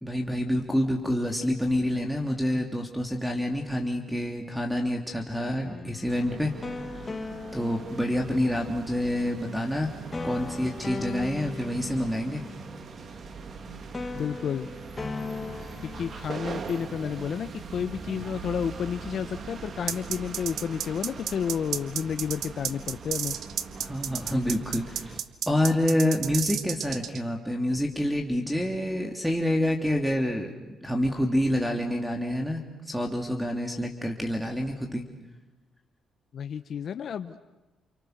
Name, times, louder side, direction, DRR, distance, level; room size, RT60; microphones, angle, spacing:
voice 1, 0.0-6.5 7.5-9.9 10.2-12.4 23.8-25.2 25.5-35.0, left 1 dB, 5° right, 3 dB, 3.1 m, -27 dB
sound 1, 5.6-8.8 10.1-13.6 13.9-16.4, left 3 dB, 25° left, 2.0 m, -39 dB
sound 2, 6.1-25.2, right 5 dB, 50° right, 2.4 m, -41 dB
voice 2, 14.1-14.7 15.9-23.3 36.3-37.4, left 7 dB, 60° left, 10 dB, 1.1 m, -31 dB
sound 3, 19.9-27.2, right 9 dB, 75° right, 1.6 m, -31 dB
29.5 x 29.5 x 6.7 m, 1.1 s
cardioid pair, 90°, 0 cm